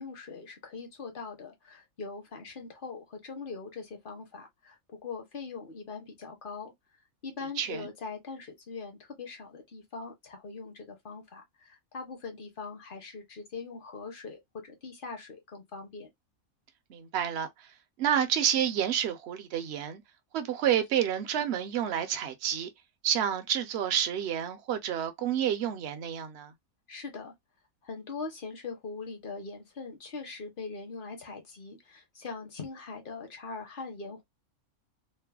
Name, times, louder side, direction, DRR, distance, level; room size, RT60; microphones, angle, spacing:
voice 1, 0.0-6.7 7.2-16.1 26.9-27.3 27.8-34.2, left 4 dB, 40° left, 0.9 m, -41 dB
voice 2, 7.6-7.9 16.9-17.5 18.0-20.0 20.3-22.7 23.0-26.5, right 9 dB, 55° right, 0.8 m, -29 dB
3.2 x 2.2 x 2.3 m
omnidirectional pair, 1.5 m